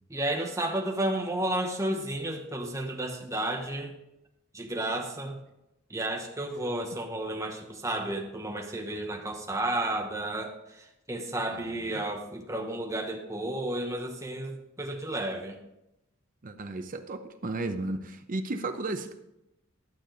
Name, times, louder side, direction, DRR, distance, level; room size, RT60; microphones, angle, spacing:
voice 1, 0.1-3.9 4.5-5.4 5.9-15.6, right 1 dB, 15° right, 2 dB, 1.0 m, -32 dB
voice 2, 16.4-19.1, right 2 dB, 40° right, 7 dB, 0.7 m, -34 dB
11.5 x 6.8 x 3.9 m, 0.88 s
head